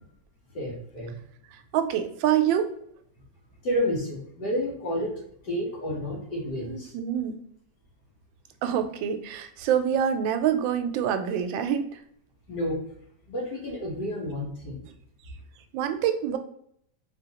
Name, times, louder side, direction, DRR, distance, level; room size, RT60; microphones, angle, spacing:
voice 1, 0.5-1.2 3.6-6.9 12.5-12.8 13.3-14.8, equal, 65° left, -2 dB, 1.7 m, -30 dB
voice 2, 1.5-2.7 6.6-7.4 8.6-12.0 15.7-16.4, right 9 dB, 85° right, 8 dB, 1.3 m, -26 dB
3.9 x 3.4 x 2.9 m, 0.69 s
omnidirectional pair, 2.0 m